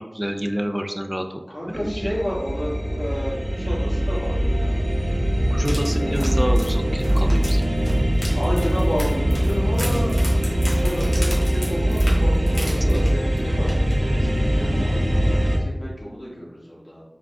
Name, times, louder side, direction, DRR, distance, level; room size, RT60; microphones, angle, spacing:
voice 1, 0.0-2.1 5.5-7.6 12.8-13.0, equal, 15° right, 6 dB, 0.4 m, -28 dB
voice 2, 1.5-4.8 8.3-10.2 10.5-13.7 14.1-17.0, equal, 25° left, -7 dB, 1.4 m, -31 dB
sound 1, 1.7-15.6, equal, 70° right, 0.6 m, -21 dB
sound 2, 5.6-13.4 13.7-13.9 14.3-14.4, left 1 dB, 55° left, 1.3 m, -36 dB
4.7 x 2.2 x 3.6 m, 1.0 s
wide cardioid pair, 50°, 0 cm